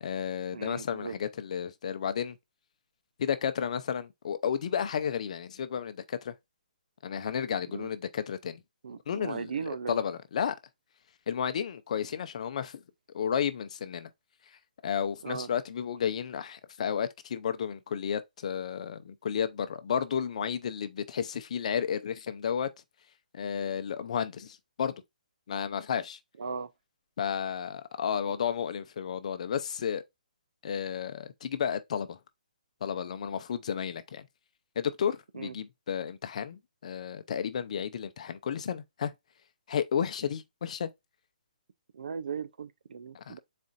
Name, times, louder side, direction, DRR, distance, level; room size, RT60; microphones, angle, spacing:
voice 1, 0.0-2.4 3.2-6.3 7.0-8.6 9.1-9.5 9.9-10.5 11.3-12.8 13.1-14.1 14.8-22.7 23.3-25.0 25.5-26.2 27.2-30.0 30.6-32.2 32.8-34.3 34.8-39.1 39.7-40.9 43.1-43.4, left 8 dB, 50° left, 0.5 m, -32 dB
voice 2, 0.5-1.1 7.7-7.9 8.8-10.0 15.2-15.5 26.4-26.7 28.3-28.4 35.3-35.5 41.9-43.4, right 6 dB, 70° right, 0.5 m, -37 dB
4.2 x 2.4 x 3.9 m
hypercardioid pair, 160°, 5 cm